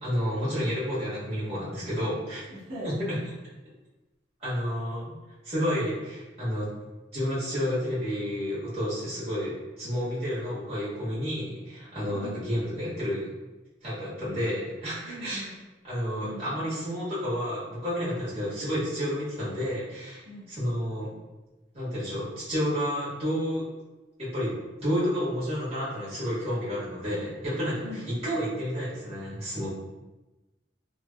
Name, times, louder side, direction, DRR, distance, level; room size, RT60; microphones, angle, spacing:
voice 1, 0.0-2.4 2.8-2.9 4.4-5.1 5.4-6.7 7.1-13.2 13.8-15.5 15.8-20.2 20.5-21.1 21.7-23.7 24.2-29.7, equal, 35° right, -11 dB, 1.3 m, -30 dB
voice 2, 2.5-3.0 12.1-12.3 15.1-15.6 16.2-16.5 20.3-20.5 27.8-28.1, equal, 65° right, -10 dB, 0.8 m, -40 dB
3.2 x 2.1 x 2.3 m, 1.1 s
head